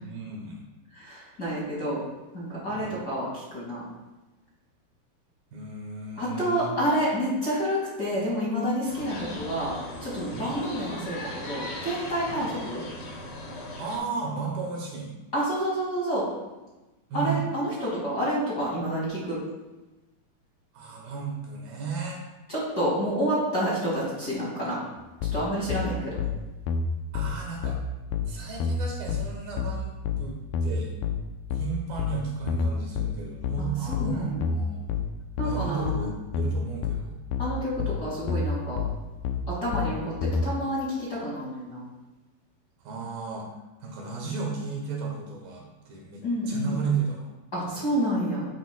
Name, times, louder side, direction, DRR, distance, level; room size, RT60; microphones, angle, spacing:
voice 1, 0.0-0.6 2.7-2.9 5.5-6.8 10.3-10.5 12.3-12.4 13.8-15.1 17.1-17.4 20.7-22.2 27.1-27.8 28.2-29.9 30.2-30.9 31.5-34.9 35.4-37.2 42.8-43.5 43.8-47.3 47.7-47.9, right 5 dB, 70° right, -1 dB, 3.3 m, -34 dB
voice 2, 0.9-2.0 2.3-3.8 6.2-9.7 10.0-12.8 15.3-16.3 17.1-19.4 22.5-24.8 25.3-26.2 33.6-34.4 35.4-36.1 37.4-38.8 39.5-41.9 46.2-46.8 47.5-48.5, equal, 35° left, -8 dB, 1.9 m, -29 dB
sound 1, 8.8-14.0, left 2 dB, 55° left, 3.6 m, -38 dB
sound 2, 25.2-40.5, left 5 dB, 80° left, 2.1 m, -28 dB
10.5 x 9.1 x 2.2 m, 1.1 s
omnidirectional pair, 4.5 m